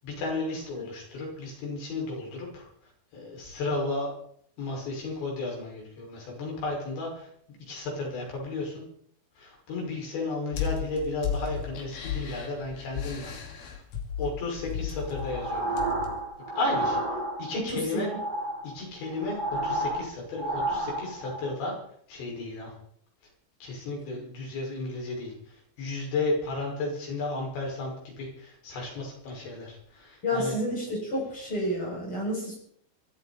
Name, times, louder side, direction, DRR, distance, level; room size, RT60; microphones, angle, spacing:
voice 1, 0.0-4.1 4.6-8.8 9.4-13.3 13.6-13.8 14.2-15.8 16.6-17.0 17.4-18.1 18.6-21.7 22.1-22.7 23.6-30.6, left 2 dB, 90° left, -1 dB, 8.3 m, -34 dB
sound 1, 10.5-16.2, left 8 dB, 60° left, 4.1 m, -35 dB
sound 2, 15.0-17.7 18.0-21.5, right 1 dB, 10° right, 5.0 m, -31 dB
voice 2, 17.5-18.0 30.2-32.6, equal, 30° left, -2 dB, 8.1 m, -30 dB
24.5 x 13.5 x 4.4 m, 0.65 s
omnidirectional pair, 5.0 m